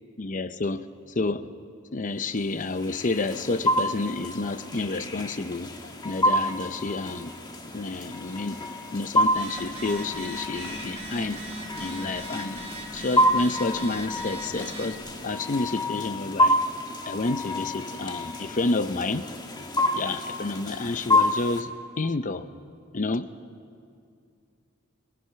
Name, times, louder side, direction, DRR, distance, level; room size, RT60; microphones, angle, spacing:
voice 1, 0.2-0.9 1.1-1.5 1.9-7.3 7.7-8.6 8.9-11.4 11.8-12.6 12.9-15.0 15.2-16.6 17.0-19.3 19.9-21.7 22.0-22.5 22.9-23.3, left 3 dB, 40° left, 12 dB, 0.6 m, -29 dB
sound 1, 2.4-21.6, left 1 dB, 20° left, 1.4 m, -28 dB
Telephone, 9.3-14.9, right 1 dB, 35° right, 2.8 m, -39 dB
29.5 x 20.0 x 5.8 m, 2.4 s
head